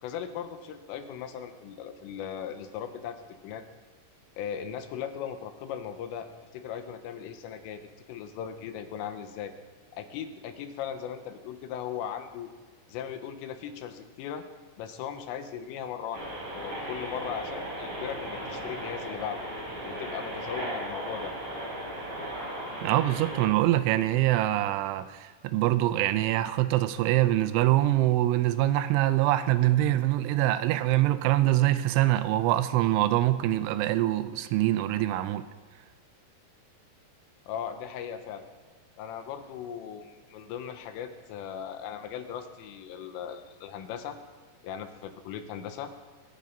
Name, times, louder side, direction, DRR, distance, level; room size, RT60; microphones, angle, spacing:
voice 1, 0.0-3.6 4.4-7.8 8.1-9.5 9.9-12.5 12.9-14.5 14.8-16.3 16.5-19.5 19.8-21.3 37.5-38.5 39.0-44.2 44.6-45.9, left 8 dB, 90° left, 7 dB, 3.8 m, -38 dB
sound 1, 16.1-23.5, right 1 dB, 40° right, 8.2 m, -36 dB
voice 2, 22.8-35.5, right 15 dB, 85° right, 12 dB, 3.0 m, -24 dB
23.0 x 10.5 x 5.3 m, 1.4 s
omnidirectional pair, 5.6 m